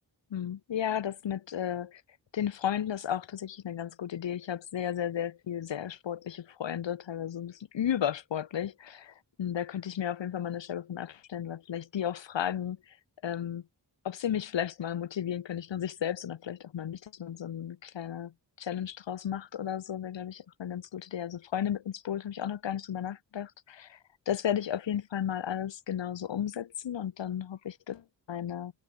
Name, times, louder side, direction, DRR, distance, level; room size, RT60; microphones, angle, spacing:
voice 1, 0.3-2.0 2.3-13.0 13.2-13.6 14.0-24.0 24.3-28.8, left 9 dB, 85° left, 0.9 m, -34 dB
wide cardioid pair, 115°, 44 cm